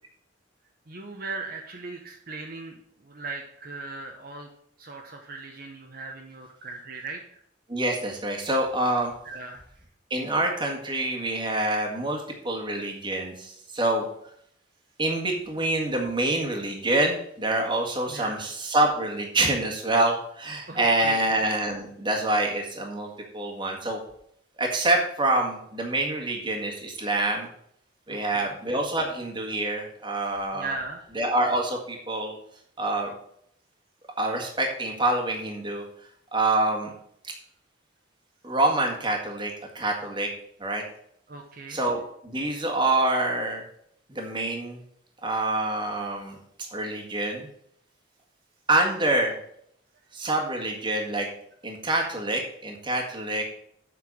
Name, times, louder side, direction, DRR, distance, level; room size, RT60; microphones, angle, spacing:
voice 1, 0.9-4.5 4.8-7.4 9.2-9.6 18.1-18.4 20.7-21.3 28.1-28.6 30.5-31.0 41.3-41.8, right 3 dB, 50° right, 1 dB, 1.0 m, -38 dB
voice 2, 7.7-9.1 10.1-14.1 15.0-24.0 24.6-27.5 28.1-30.7 31.2-32.4 32.8-33.1 34.2-35.8 36.3-36.9 37.2-37.3 38.4-40.3 40.6-40.8 41.7-43.6 44.1-44.8 45.2-46.4 46.7-47.5 48.7-49.3 50.1-51.3 51.6-53.4, right 2 dB, 25° right, 0 dB, 1.8 m, -26 dB
7.7 x 5.8 x 7.0 m, 0.70 s
head